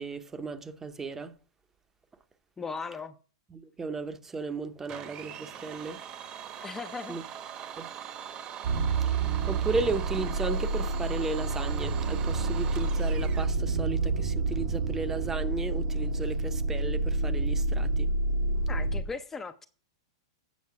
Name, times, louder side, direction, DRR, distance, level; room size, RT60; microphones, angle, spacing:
voice 1, 0.0-1.3 3.5-6.0 7.1-7.2 7.8-7.9 9.1-18.1, right 3 dB, 15° right, 0.8 m, -35 dB
voice 2, 2.6-3.2 6.6-7.2 18.7-19.7, left 4 dB, 15° left, 0.6 m, -37 dB
Domestic sounds home sounds, 4.9-13.6, right 9 dB, 35° right, 1.0 m, -42 dB
sound 1, 8.6-19.0, right 3 dB, 65° right, 1.1 m, -28 dB
8.5 x 6.3 x 4.7 m
hypercardioid pair, 110°, 2 cm